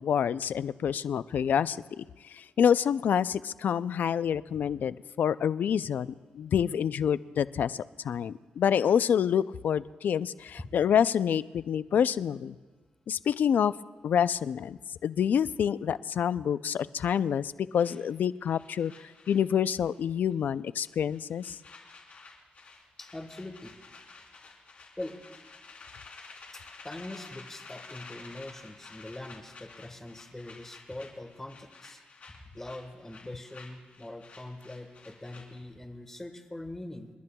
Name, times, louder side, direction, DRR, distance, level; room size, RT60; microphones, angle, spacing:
voice 1, 0.0-12.6 13.1-13.7 14.0-18.9 19.3-21.6, left 8 dB, 70° left, 16 dB, 0.3 m, -27 dB
sound 1, 17.8-20.0 20.3-20.5 20.8-35.7, left 4 dB, 50° left, 3.5 m, -51 dB
voice 2, 23.0-23.7 25.0-25.2 26.5-32.0 32.5-37.1, left 1 dB, 15° left, 5 dB, 1.3 m, -42 dB
29.5 x 12.5 x 2.3 m, 1.4 s
wide cardioid pair, 130°, 3 cm